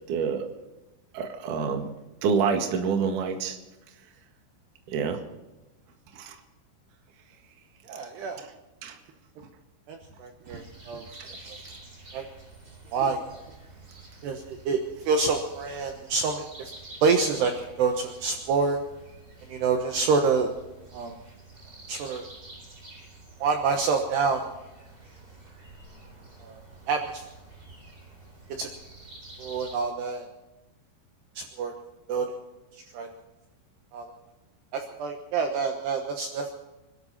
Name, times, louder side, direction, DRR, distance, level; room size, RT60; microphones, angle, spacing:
voice 1, 0.1-0.5 1.1-1.9 2.2-3.6 4.9-5.2 6.1-6.4 8.4-8.5 8.8-9.0 11.4-11.5, right 6 dB, 55° right, 4 dB, 2.7 m, -27 dB
voice 2, 7.8-8.4 9.9-11.0 12.1-12.2 12.9-13.4 14.2-16.5 17.0-17.5 17.8-18.8 19.5-20.5 20.9-21.1 21.9-22.2 23.4-24.5 26.4-26.6 26.9-27.2 28.6-28.7 29.4-30.3 31.4-31.7 32.1-32.3 32.9-33.1 33.9-34.1 34.7-36.7, right 4 dB, 70° right, 4 dB, 2.9 m, -27 dB
sound 1, 10.4-29.8, right 2 dB, 20° right, 3.8 m, -49 dB
26.5 x 12.5 x 4.2 m, 1.0 s
omnidirectional pair, 5.7 m